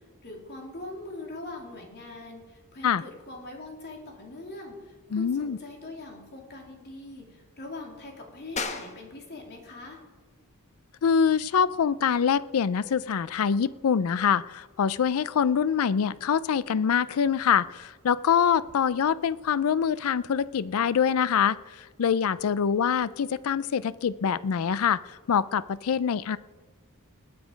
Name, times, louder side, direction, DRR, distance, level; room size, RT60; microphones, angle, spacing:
voice 1, 0.2-10.0, left 2 dB, 50° left, 1 dB, 2.9 m, -42 dB
voice 2, 5.1-5.6 11.0-26.4, left 7 dB, 70° left, 18 dB, 0.4 m, -25 dB
sound 1, 8.6-18.8, left 4 dB, 35° left, 1.0 m, -44 dB
20.0 x 8.5 x 5.1 m, 1.3 s
head